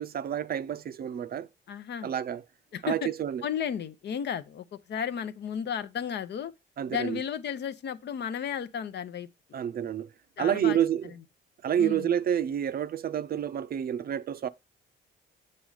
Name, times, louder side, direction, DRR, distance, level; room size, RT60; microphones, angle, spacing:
voice 1, 0.0-1.5 2.0-2.4 2.8-3.4 6.8-7.2 9.5-10.1 10.4-11.0 11.6-14.5, right 10 dB, 50° right, 0.5 m, -29 dB
voice 2, 1.7-2.1 2.7-3.1 3.4-6.5 6.9-9.3 10.4-10.8 11.8-12.1, left 8 dB, 60° left, 0.7 m, -33 dB
7.8 x 4.1 x 4.9 m
cardioid pair, 90°, 20 cm